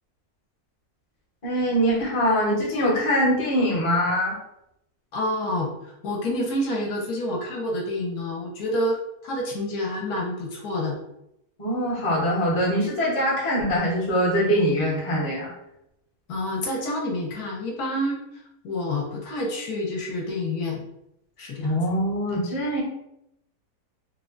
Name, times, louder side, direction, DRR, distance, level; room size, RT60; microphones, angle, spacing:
voice 1, 1.4-4.3 11.6-15.5 21.6-22.8, equal, 30° left, -5 dB, 0.6 m, -23 dB
voice 2, 5.1-9.0 9.2-11.0 16.3-18.2 18.6-20.9 21.4-21.8 22.3-22.4, left 1 dB, 75° left, 0 dB, 1.0 m, -28 dB
3.2 x 2.1 x 2.4 m, 0.82 s
omnidirectional pair, 1.7 m